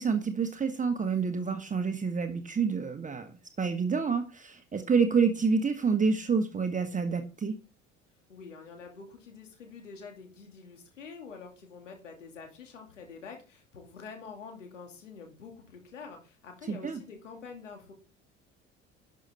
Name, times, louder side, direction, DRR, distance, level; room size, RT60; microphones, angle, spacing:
voice 1, 0.0-3.3 3.6-7.6 16.7-17.0, right 5 dB, 20° right, 7 dB, 1.3 m, -28 dB
voice 2, 8.3-17.9, left 5 dB, 75° left, 3 dB, 2.6 m, -47 dB
12.0 x 6.6 x 4.3 m, 0.33 s
figure-of-eight pair, 60°, 37 cm